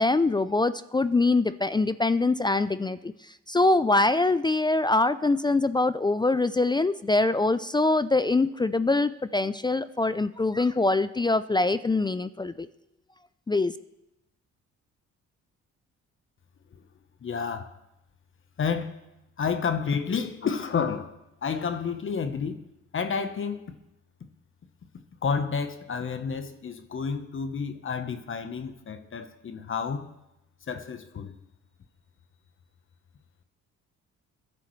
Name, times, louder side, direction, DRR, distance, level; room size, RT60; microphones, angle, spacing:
voice 1, 0.0-3.1 3.5-12.7 13.5-13.7, left 2 dB, 15° left, 0.4 m, -24 dB
voice 2, 17.2-17.7 18.6-19.0 19.4-22.6 22.9-23.6 25.2-30.1 30.7-31.3, left 6 dB, 40° left, 1.0 m, -30 dB
24.0 x 10.5 x 3.2 m
cardioid pair, 90°, 30 cm